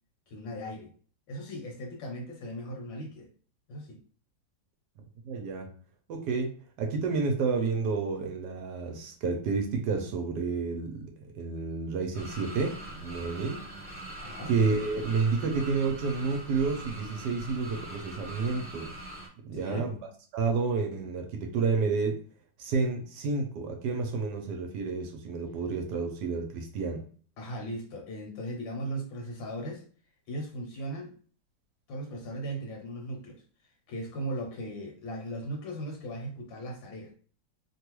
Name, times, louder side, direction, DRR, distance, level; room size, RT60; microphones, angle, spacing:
voice 1, 0.3-0.9 1.3-3.3 3.7-4.0 14.2-14.5 19.5-19.9 27.4-29.9 30.3-31.1 31.9-33.4 33.9-37.1, right 1 dB, 75° left, 1 dB, 1.5 m, -38 dB
voice 2, 5.2-5.7 6.1-6.5 6.8-13.6 14.5-18.9 19.4-19.9 20.3-22.2 22.6-27.0, right 4 dB, 70° right, 4 dB, 1.1 m, -30 dB
sound 1, 12.1-19.3, right 1 dB, 25° right, 1.0 m, -43 dB
3.2 x 2.3 x 3.0 m, 0.42 s
omnidirectional pair, 2.1 m